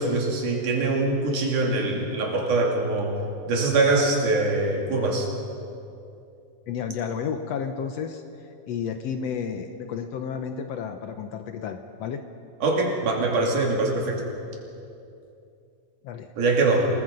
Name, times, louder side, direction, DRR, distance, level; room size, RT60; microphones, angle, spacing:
voice 1, 0.0-3.1 3.5-5.3 12.6-14.2 16.4-16.9, right 3 dB, 65° right, 0 dB, 4.2 m, -23 dB
voice 2, 6.7-8.2 8.7-12.2 16.0-16.3, left 7 dB, 80° left, 7 dB, 1.5 m, -31 dB
27.5 x 19.5 x 5.3 m, 2.6 s
omnidirectional pair, 3.9 m